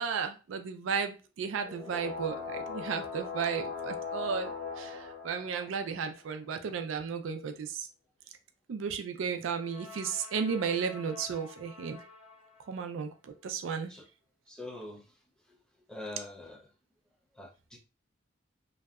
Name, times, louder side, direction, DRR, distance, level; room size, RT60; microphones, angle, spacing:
voice 1, 0.0-4.5 4.8-7.9 8.7-12.0 12.7-13.9, right 6 dB, 70° right, 7 dB, 0.4 m, -34 dB
sound 1, 1.6-6.2 9.6-12.4, left 5 dB, 85° left, 1.5 m, -41 dB
voice 2, 14.5-15.2 15.9-16.7 17.3-17.8, left 2 dB, 5° left, 0 dB, 0.5 m, -44 dB
2.7 x 2.1 x 2.3 m, 0.32 s
head